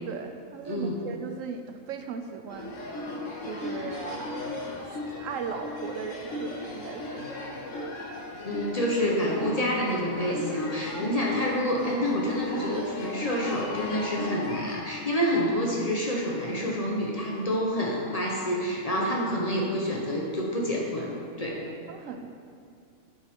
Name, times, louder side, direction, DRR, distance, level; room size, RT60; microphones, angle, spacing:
voice 1, 0.1-2.8 3.4-4.4 4.8-7.3 10.3-10.6 11.0-11.1 19.0-19.1 21.9-22.3, right 6 dB, 75° right, 6 dB, 1.0 m, -38 dB
voice 2, 0.7-1.0 8.4-21.1 21.4-21.6, equal, 30° left, -3 dB, 0.9 m, -28 dB
sound 1, 2.5-14.8, left 2 dB, 70° left, 1.3 m, -36 dB
10.5 x 5.3 x 3.6 m, 2.4 s
omnidirectional pair, 1.4 m